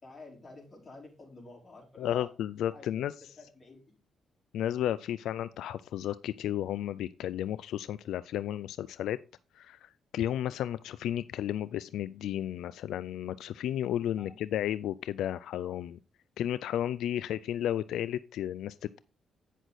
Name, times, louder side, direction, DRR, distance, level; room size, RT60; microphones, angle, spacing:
voice 1, 0.0-2.3 2.7-2.8 3.4-3.8 14.2-14.4, left 2 dB, 30° left, -2 dB, 4.2 m, -49 dB
voice 2, 2.0-3.1 4.5-9.2 9.5-16.0 16.4-19.0, left 11 dB, 85° left, 15 dB, 0.3 m, -33 dB
9.1 x 6.3 x 4.0 m, 0.32 s
cardioid pair, 90°, 0 cm